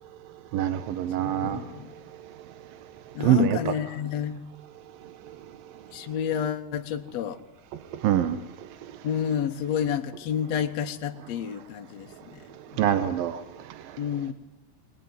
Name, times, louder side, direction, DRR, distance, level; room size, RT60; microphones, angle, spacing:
voice 1, 0.5-1.6 3.2-3.6 8.0-8.4 12.8-13.4, right 11 dB, 70° right, 2.4 m, -24 dB
voice 2, 1.2-1.9 3.1-4.4 5.9-7.4 9.0-12.4 12.7-12.8 14.0-14.3, left 8 dB, 85° left, 1.4 m, -30 dB
24.5 x 19.5 x 9.6 m
omnidirectional pair, 4.9 m